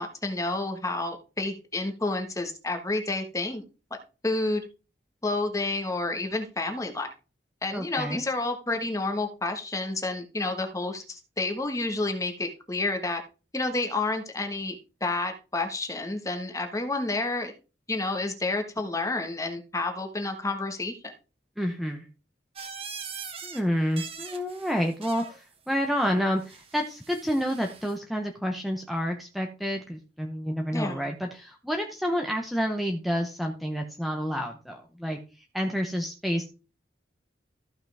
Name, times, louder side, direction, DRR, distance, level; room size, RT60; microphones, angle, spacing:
voice 1, 0.0-3.6 4.2-4.6 5.2-7.1 7.6-13.2 13.5-17.5 17.9-21.1 30.7-31.1, left 2 dB, 20° left, 5 dB, 1.3 m, -30 dB
voice 2, 7.7-8.2 21.6-22.1 23.4-35.2 35.5-36.5, equal, ahead, 3 dB, 0.8 m, -29 dB
sound 1, 22.6-23.6 23.9-25.4 26.4-28.0, right 6 dB, 30° right, 1.2 m, -42 dB
14.5 x 5.7 x 3.4 m, 0.32 s
head